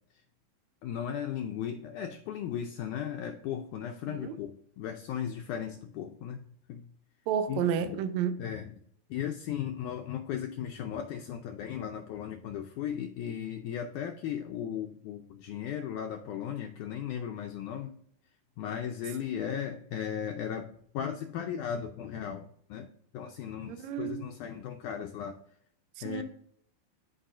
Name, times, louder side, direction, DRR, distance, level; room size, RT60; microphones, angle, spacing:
voice 1, 0.8-6.9 7.5-8.0 8.4-8.8 9.1-17.9 18.6-22.9 23.1-25.4 26.0-26.2, left 9 dB, 80° left, 1.8 m, -36 dB
voice 2, 7.3-8.4 23.7-24.3 26.0-26.2, right 8 dB, 75° right, 1.7 m, -31 dB
13.0 x 4.8 x 2.5 m
omnidirectional pair, 4.1 m